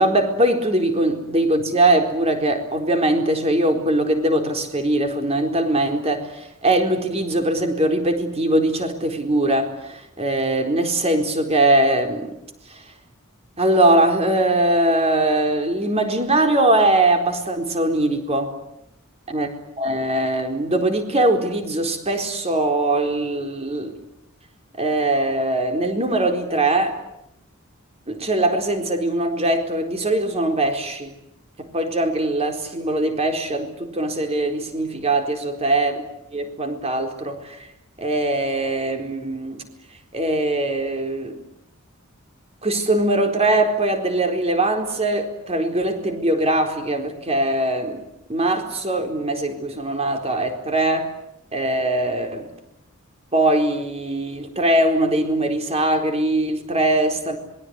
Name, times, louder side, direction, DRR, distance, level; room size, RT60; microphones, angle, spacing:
voice 1, 0.0-12.4 12.7-12.8 13.6-18.6 19.3-19.5 19.8-24.0 24.8-27.0 28.1-31.1 31.6-36.0 36.3-37.7 38.0-39.6 40.1-41.4 42.6-48.0 48.3-51.1 51.5-52.5 53.3-57.4, right 1 dB, 30° right, 5 dB, 4.2 m, -21 dB
26.5 x 22.5 x 9.7 m, 0.81 s
head